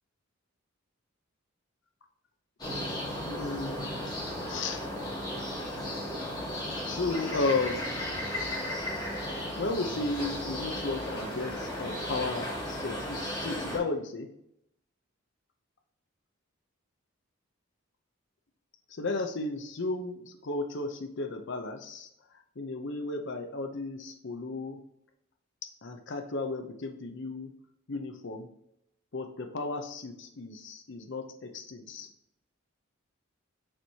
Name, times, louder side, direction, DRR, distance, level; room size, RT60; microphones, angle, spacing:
sound 1, 2.6-13.8, left 1 dB, 20° left, 2.3 m, -35 dB
voice 1, 3.2-4.0 4.5-4.9 6.9-7.9 9.5-14.3 18.9-22.1 22.6-24.8 25.6-27.5 27.9-28.5 29.1-32.1, left 3 dB, 60° left, 5 dB, 0.7 m, -34 dB
7.6 x 4.6 x 2.8 m, 0.78 s
head